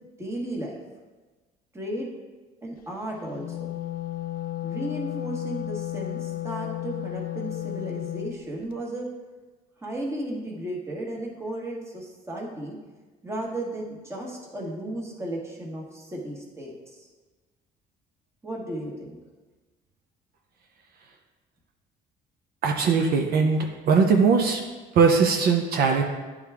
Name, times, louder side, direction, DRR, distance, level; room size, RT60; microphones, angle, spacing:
voice 1, 0.2-0.8 1.7-2.1 2.6-3.8 4.6-9.1 9.8-12.8 13.2-17.1 18.4-19.2, right 1 dB, 15° right, -2 dB, 1.3 m, -34 dB
Wind instrument woodwind instrument, 3.2-8.4, left 14 dB, 60° left, 0.4 m, -33 dB
voice 2, 22.6-24.6 24.9-26.0, right 5 dB, 65° right, 2 dB, 0.7 m, -20 dB
9.8 x 3.5 x 3.5 m, 1.3 s
cardioid pair, 110°, 17 cm